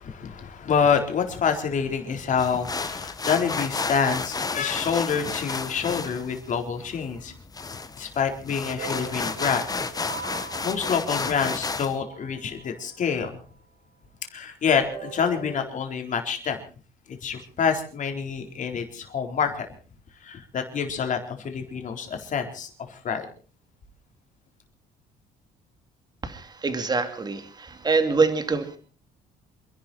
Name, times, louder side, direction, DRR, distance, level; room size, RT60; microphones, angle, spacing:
voice 1, 0.0-7.3 8.0-9.6 10.4-13.4 14.3-16.6 17.1-19.7 20.2-23.3, left 6 dB, 50° left, 5 dB, 4.1 m, -27 dB
sound 1, 2.4-12.0, left 4 dB, 20° left, 1.4 m, -32 dB
Despair Music, 8.8-13.4 14.6-15.6, right 5 dB, 70° right, 6.7 m, -41 dB
voice 2, 26.2-28.8, right 4 dB, 25° right, 8 dB, 2.8 m, -25 dB
28.0 x 11.0 x 4.3 m, 0.40 s
cardioid pair, 110°, 17 cm